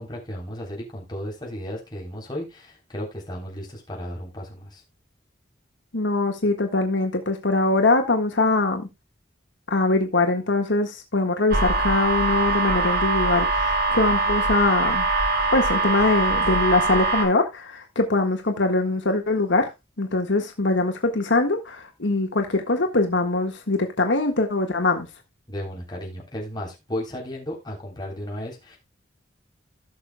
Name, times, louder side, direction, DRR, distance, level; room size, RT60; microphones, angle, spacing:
voice 1, 0.0-4.8 25.5-28.8, equal, 25° left, 3.5 m, -34 dB
voice 2, 5.9-8.9 9.7-15.1 15.5-19.7 20.0-25.1, left 2 dB, 85° left, 1.6 m, -22 dB
sound 1, 11.5-17.2, right 3 dB, 55° right, 3.6 m, -22 dB
17.0 x 6.5 x 2.2 m
head